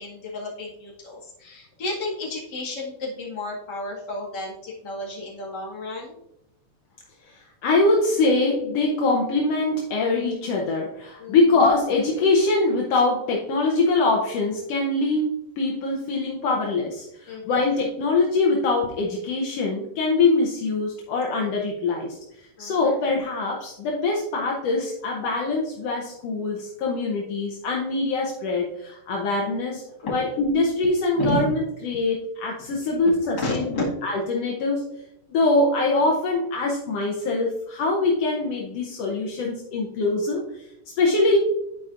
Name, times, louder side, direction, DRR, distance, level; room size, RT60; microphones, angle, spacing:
voice 1, 0.0-6.2 11.2-11.4 17.3-17.6 22.6-23.0 30.0-30.1 31.1-31.4 33.4-33.8, left 2 dB, 40° left, -5 dB, 2.1 m, -32 dB
voice 2, 7.2-22.2 22.6-29.8 30.1-31.6 31.8-34.8 35.3-41.4, left 3 dB, 75° left, -1 dB, 1.5 m, -23 dB
11.5 x 4.8 x 2.5 m, 0.85 s
omnidirectional pair, 3.7 m